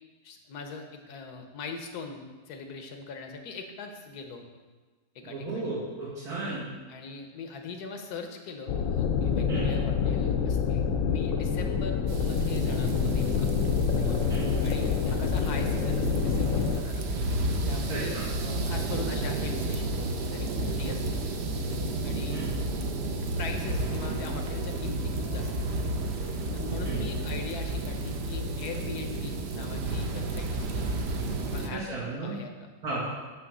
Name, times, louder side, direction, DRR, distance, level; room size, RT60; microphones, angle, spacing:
voice 1, 0.2-4.5 5.1-5.7 6.9-13.5 14.0-14.2 14.6-17.0 17.7-21.4 22.0-22.5 23.4-25.9 26.5-30.9 31.5-31.8 32.2-32.7, left 4 dB, 80° left, 4 dB, 1.4 m, -41 dB
voice 2, 5.3-6.7 9.5-9.7 14.3-14.5 17.9-18.2 22.3-22.5 26.8-27.0 31.7-32.4 32.8-33.1, right 3 dB, 75° right, -10 dB, 2.1 m, -34 dB
sound 1, 8.7-16.8, left 6 dB, 65° left, 0.9 m, -27 dB
sound 2, 12.1-31.7, right 2 dB, 55° right, 0.8 m, -31 dB
9.4 x 3.2 x 6.1 m, 1.3 s
omnidirectional pair, 1.6 m